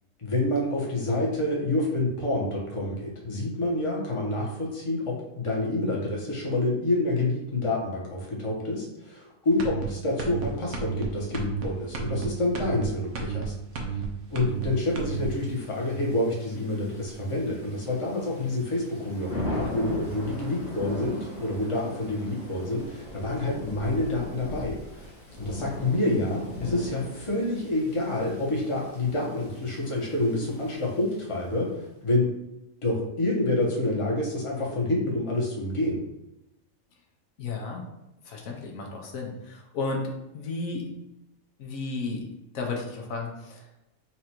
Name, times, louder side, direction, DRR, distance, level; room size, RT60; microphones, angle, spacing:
voice 1, 0.2-14.0 14.3-25.1 25.4-32.3 32.8-36.0, left 2 dB, 25° left, -3 dB, 1.0 m, -28 dB
sound 1, 9.6-9.8 10.2-10.4 10.7-11.0 11.3-11.6 11.9-12.3 12.5-12.8 13.1-13.4 13.7-14.1 14.3-14.7 14.9-15.3, right 6 dB, 65° right, 1.0 m, -32 dB
Thunder / Rain, 15.0-31.6, left 1 dB, 45° left, 1.3 m, -39 dB
voice 2, 37.4-37.9 38.2-40.9 41.6-42.2 42.5-43.7, left 3 dB, 80° left, 0 dB, 1.3 m, -33 dB
4.3 x 2.5 x 4.4 m, 0.93 s
omnidirectional pair, 1.4 m